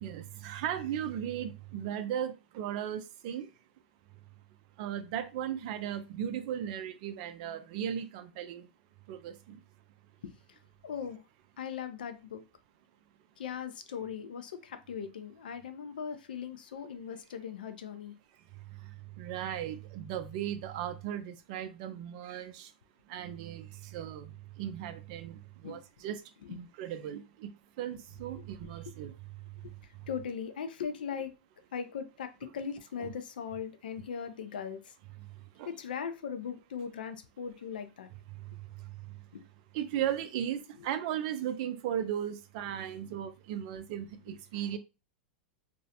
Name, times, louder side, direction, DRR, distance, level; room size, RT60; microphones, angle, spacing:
voice 1, 0.0-3.5 4.8-8.7 9.1-9.6 19.2-22.7 23.1-24.3 24.6-26.2 26.5-27.5 27.8-29.1 33.0-33.1 35.6-35.7 39.7-44.8, right 10 dB, 50° right, 0.4 m, -36 dB
voice 2, 10.2-11.2 11.6-12.4 13.4-18.1 25.6-25.8 26.4-26.6 28.4-28.9 29.6-31.3 31.7-34.9 35.7-38.1 39.3-39.4 40.8-40.9, left 7 dB, 75° left, 0.4 m, -39 dB
2.5 x 2.0 x 2.7 m
hypercardioid pair, 105°, 5 cm